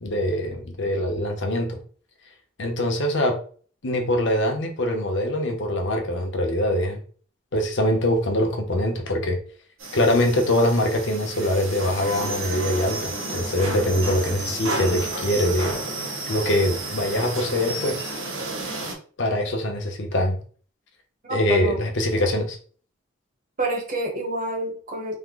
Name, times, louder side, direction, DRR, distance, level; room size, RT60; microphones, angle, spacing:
voice 1, 0.0-1.8 2.6-3.4 3.8-7.0 7.5-9.4 9.9-15.8 16.3-18.0 19.2-20.4 21.3-22.6, left 1 dB, 60° left, 3 dB, 0.8 m, -23 dB
sound 1, 9.8-18.9, right 2 dB, 75° right, 1.1 m, -31 dB
voice 2, 21.3-21.8 23.6-25.1, right 2 dB, 40° right, 1 dB, 1.1 m, -28 dB
3.6 x 2.1 x 3.8 m, 0.43 s
head